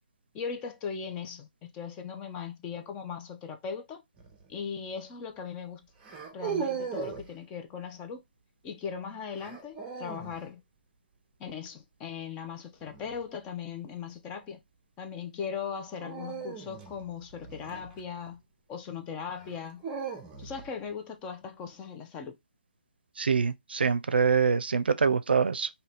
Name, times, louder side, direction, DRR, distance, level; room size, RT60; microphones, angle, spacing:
voice 1, 0.3-4.0 4.5-5.8 6.3-8.2 8.6-10.6 11.4-14.6 15.0-18.4 18.7-19.8 20.4-22.4, left 6 dB, 15° left, 0.5 m, -38 dB
sound 1, 4.2-4.5 6.0-7.3 9.4-10.4 12.8-13.2 16.0-18.4 19.4-20.7, right 6 dB, 15° right, 0.7 m, -38 dB
voice 2, 23.2-25.7, right 5 dB, 85° right, 0.4 m, -25 dB
2.8 x 2.7 x 3.3 m
hypercardioid pair, 155°, 5 cm